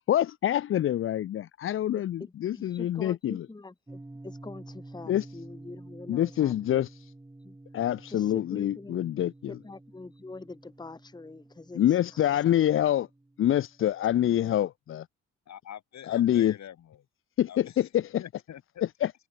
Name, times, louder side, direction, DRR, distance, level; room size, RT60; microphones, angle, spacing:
voice 1, 0.1-3.5 5.1-5.3 6.1-7.1 7.7-9.6 11.7-13.1 13.4-15.1 16.1-16.5 17.4-18.2 19.0-19.1, left 11 dB, 45° left, 0.4 m, -26 dB
voice 2, 2.5-6.8 7.4-7.5 8.1-9.0 9.5-11.8 12.2-12.4 14.3-14.5, left 3 dB, 15° left, 1.3 m, -44 dB
sound 1, 3.9-14.0, right 2 dB, 10° right, 1.8 m, -50 dB
voice 3, 15.5-17.1 17.5-17.9 18.2-18.8, left 10 dB, 65° left, 3.9 m, -45 dB
cardioid pair, 90°, 30 cm